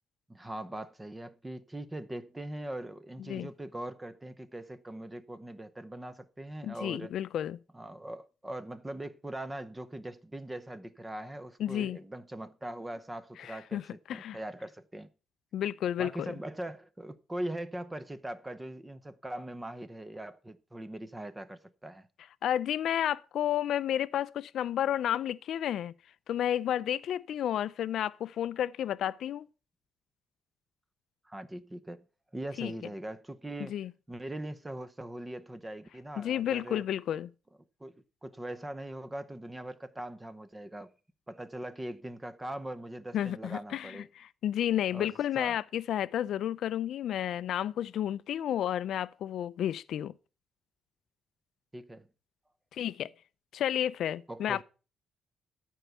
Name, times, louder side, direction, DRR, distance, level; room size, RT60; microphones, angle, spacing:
voice 1, 0.3-7.1 7.7-15.1 16.0-22.1 31.2-32.0 32.3-33.8 34.1-36.8 37.8-37.9 38.2-40.9 41.3-44.1 44.9-45.6 51.7-52.1 54.3-54.6, right 1 dB, 10° right, 0.7 m, -41 dB
voice 2, 6.6-7.6 11.6-12.0 13.4-13.8 14.1-14.4 15.5-16.3 22.4-25.9 26.3-29.5 32.6-32.7 33.7-33.9 36.2-37.3 43.1-50.1 52.7-53.1 53.5-54.6, left 10 dB, 60° left, 0.4 m, -31 dB
13.5 x 4.6 x 6.7 m
cardioid pair, 150°, 0 cm